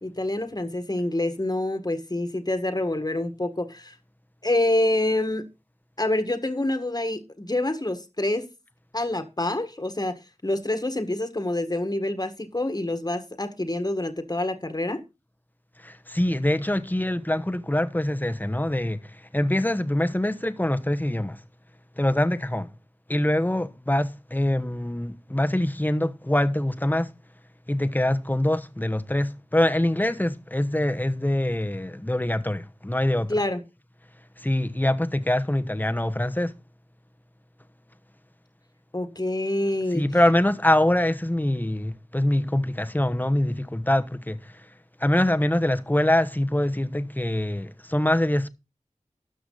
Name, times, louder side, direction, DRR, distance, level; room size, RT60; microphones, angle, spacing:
voice 1, 0.0-3.9 4.4-5.5 6.0-8.5 8.9-15.0 33.3-33.6 38.9-40.0, left 1 dB, 30° left, 1.7 m, -27 dB
voice 2, 15.8-21.4 22.0-22.7 23.1-27.1 27.7-33.3 34.4-36.5 39.9-44.5 45.0-48.5, left 1 dB, 15° left, 1.0 m, -24 dB
13.0 x 7.9 x 4.0 m
wide cardioid pair, 45°, 13 cm